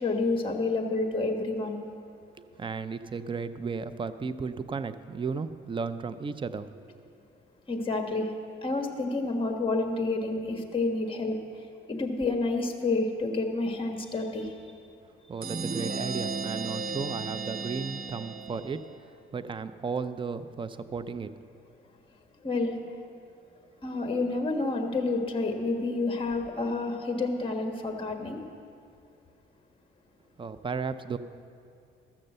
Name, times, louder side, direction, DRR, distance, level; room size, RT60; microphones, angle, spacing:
voice 1, 0.0-1.8 7.7-8.3 8.6-11.4 11.9-14.5 22.4-22.8 23.8-28.4, left 3 dB, 25° left, 4 dB, 1.4 m, -29 dB
voice 2, 2.6-7.0 15.3-18.8 19.3-21.3 30.4-31.2, right 5 dB, 25° right, 12 dB, 0.5 m, -34 dB
sound 1, 15.4-19.0, right 4 dB, 45° right, 1.1 m, -34 dB
13.0 x 6.6 x 7.7 m, 2.5 s
cardioid pair, 90°, 20 cm